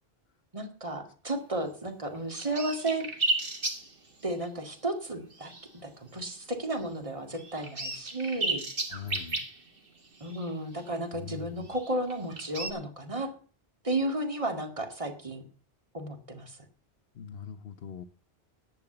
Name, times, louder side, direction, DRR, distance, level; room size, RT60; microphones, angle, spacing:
voice 1, 0.5-3.1 4.2-5.5 5.8-8.6 10.2-13.3 13.8-15.4 15.9-16.6, right 1 dB, 30° right, 6 dB, 2.1 m, -33 dB
sound 1, 1.9-2.0 2.1-4.4 4.7-4.9 5.3-5.8 6.2-6.4 6.8-6.9 7.3-11.0 11.6-12.7, right 2 dB, 60° right, 2.2 m, -34 dB
voice 2, 8.9-9.5 11.1-11.7 17.1-18.0, left 8 dB, 70° left, 3 dB, 1.1 m, -41 dB
11.0 x 8.3 x 7.9 m, 0.42 s
omnidirectional pair, 1.1 m